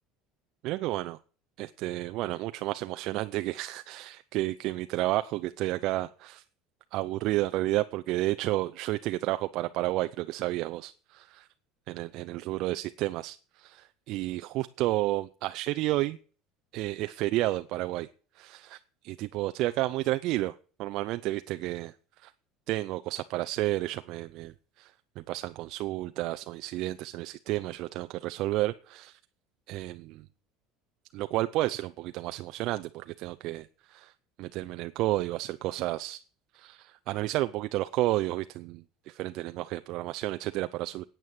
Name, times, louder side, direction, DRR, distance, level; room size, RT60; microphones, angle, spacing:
voice 1, 0.6-1.2 1.6-6.4 6.9-11.5 11.9-16.2 16.7-18.1 18.3-18.8 19.0-21.9 22.2-22.3 22.7-29.2 29.7-30.3 31.1-34.1 34.4-36.2 36.5-41.0, right 17 dB, 60° right, 11 dB, 0.6 m, -31 dB
9.5 x 9.0 x 7.7 m, 0.39 s
supercardioid pair, 120°, 0 cm